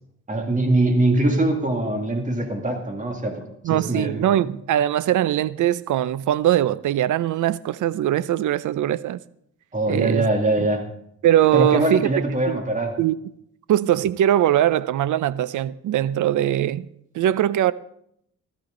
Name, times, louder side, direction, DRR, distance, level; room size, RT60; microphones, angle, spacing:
voice 1, 0.3-4.5 9.7-10.8 11.5-13.0, right 2 dB, 25° right, 2.3 m, -22 dB
voice 2, 3.6-9.2 9.9-10.3 10.6-10.7 11.2-12.6 13.0-13.2 13.7-16.9 17.1-17.7, right 12 dB, 70° right, 0.6 m, -21 dB
16.5 x 13.5 x 3.9 m
cardioid pair, 120°, 31 cm